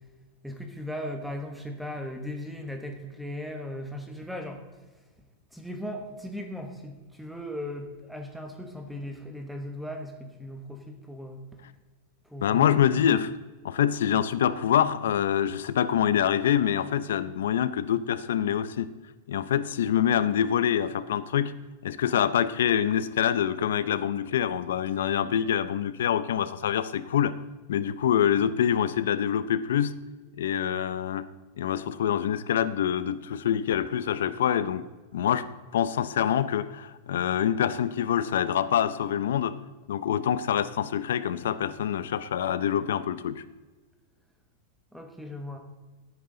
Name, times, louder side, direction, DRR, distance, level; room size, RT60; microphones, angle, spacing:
voice 1, 0.4-4.6 5.5-11.6 12.3-12.9 44.9-45.6, left 1 dB, ahead, 4 dB, 1.0 m, -37 dB
voice 2, 12.4-13.3 13.6-18.9 19.3-21.5 21.8-27.3 27.7-29.9 30.4-31.3 31.6-34.8 35.1-35.5 35.7-39.5 39.9-43.4, left 9 dB, 80° left, 14 dB, 0.6 m, -25 dB
16.0 x 9.3 x 3.8 m, 1.3 s
supercardioid pair, 175°, 0 cm